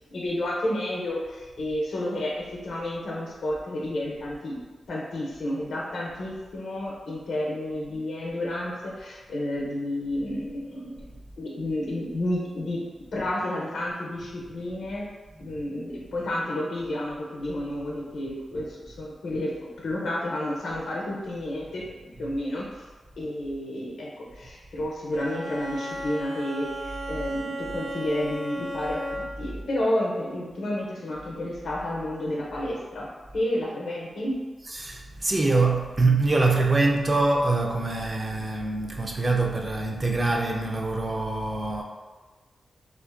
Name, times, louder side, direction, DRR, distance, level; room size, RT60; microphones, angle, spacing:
voice 1, 0.1-2.3 2.6-4.6 4.9-12.8 13.1-15.0 15.4-19.5 19.8-21.9 22.2-22.9 23.2-33.1 33.3-34.4, left 1 dB, 80° left, -3 dB, 0.6 m, -31 dB
Bowed string instrument, 25.1-29.5, equal, 85° right, 0.8 m, -35 dB
voice 2, 34.6-41.8, right 3 dB, 35° right, 1 dB, 0.4 m, -24 dB
2.5 x 2.2 x 2.4 m, 1.3 s
cardioid pair, 65°, 0 cm